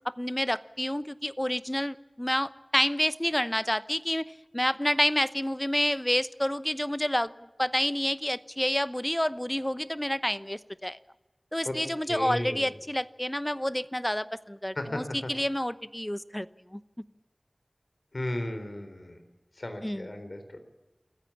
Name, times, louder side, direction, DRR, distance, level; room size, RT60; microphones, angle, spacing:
voice 1, 0.2-7.3 7.6-11.0 11.5-16.5 16.7-16.8 19.8-20.3, equal, 15° left, 15 dB, 0.9 m, -29 dB
voice 2, 12.0-12.7 14.8-15.3 18.1-19.2 19.6-20.6, left 1 dB, 70° left, 7 dB, 4.0 m, -35 dB
27.0 x 15.0 x 8.5 m, 1.1 s
wide cardioid pair, 40°, 0 cm